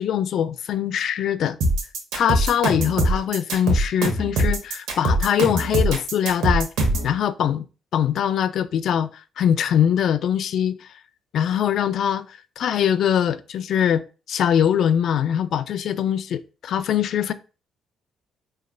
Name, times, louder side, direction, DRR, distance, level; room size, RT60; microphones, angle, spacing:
voice 1, 0.0-1.6 2.1-6.7 7.0-7.6 7.9-9.1 9.4-10.9 11.3-17.3, left 9 dB, 70° left, 0.3 m, -22 dB
sound 1, 1.6-7.1, right 1 dB, 80° right, 1.1 m, -22 dB
4.8 x 3.2 x 2.3 m
cardioid pair, 90°, 0 cm